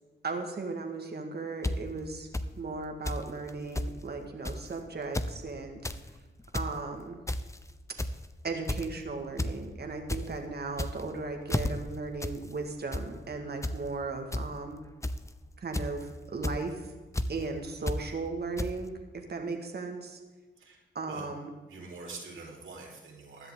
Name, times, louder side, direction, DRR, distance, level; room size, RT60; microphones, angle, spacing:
voice 1, 0.2-2.3 2.6-5.8 6.5-7.2 8.4-14.8 15.6-16.9 17.3-20.2 21.0-21.5, right 3 dB, 50° right, 4 dB, 1.8 m, -36 dB
sound 1, 1.6-1.7 2.3-2.5 3.1-3.2 3.5-3.9 4.4-4.7 5.0-5.3 5.7-6.0 6.4-6.7 7.3-7.6 8.0-8.3 8.7-8.9 9.4-9.5 9.9-10.2 10.7-11.1 11.5-11.7 12.2-12.4 12.7-13.0 13.6-13.8 14.3-14.4 15.0-15.3 15.7-16.0 16.4-16.6 17.1-17.3 17.9-18.0 18.6-18.7, left 1 dB, 15° left, 0.8 m, -31 dB
voice 2, 20.6-21.3 21.7-23.5, right 3 dB, 75° right, -1 dB, 3.9 m, -45 dB
16.0 x 10.5 x 3.7 m, 1.2 s
cardioid pair, 60°, 21 cm